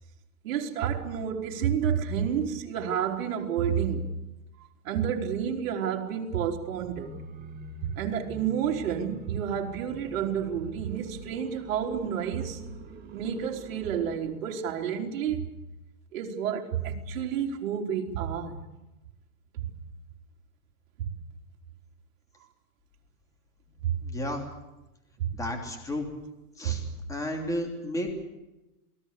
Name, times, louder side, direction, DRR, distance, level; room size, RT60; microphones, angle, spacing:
voice 1, 0.4-4.1 4.8-7.2 8.0-12.6 13.1-15.5 16.1-18.6 19.6-19.7 21.0-21.1 23.8-23.9 25.2-25.3 26.6-26.9, right 8 dB, 60° right, 1 dB, 4.0 m, -30 dB
sound 1, 6.7-14.4, right 3 dB, 20° right, 2.7 m, -45 dB
voice 2, 24.0-24.4 25.3-26.1 26.6-26.8 27.1-28.1, left 1 dB, 5° left, 3 dB, 3.0 m, -32 dB
28.0 x 20.5 x 6.8 m, 0.98 s
supercardioid pair, 160°, 45 cm